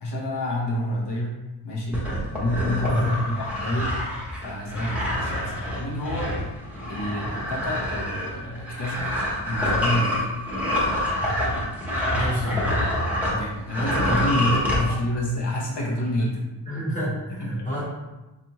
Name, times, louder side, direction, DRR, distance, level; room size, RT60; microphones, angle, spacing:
voice 1, 0.0-1.3 1.6-2.0 2.3-6.3 6.9-9.1 9.4-10.4 13.3-16.4 17.4-17.8, left 1 dB, 70° left, -3 dB, 1.1 m, -28 dB
sound 1, 1.9-13.4 13.7-14.8, left 1 dB, 5° right, 0.9 m, -27 dB
voice 2, 2.9-3.3 7.3-7.5 12.1-12.7 14.8-15.0 16.7-17.9, equal, 20° left, -7 dB, 1.2 m, -27 dB
4.1 x 2.6 x 2.9 m, 1.1 s
wide cardioid pair, 135°, 43 cm